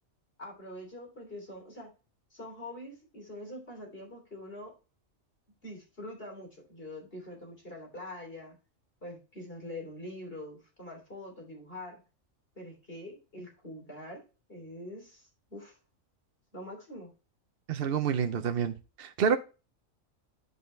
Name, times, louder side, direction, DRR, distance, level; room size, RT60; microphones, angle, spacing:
voice 1, 0.4-1.9 2.3-4.7 5.6-8.6 9.0-12.0 12.6-15.8 16.5-17.1, left 1 dB, 45° left, 3.5 m, -44 dB
voice 2, 17.7-19.4, right 7 dB, 55° right, 0.8 m, -28 dB
10.5 x 5.4 x 3.3 m
omnidirectional pair, 1.4 m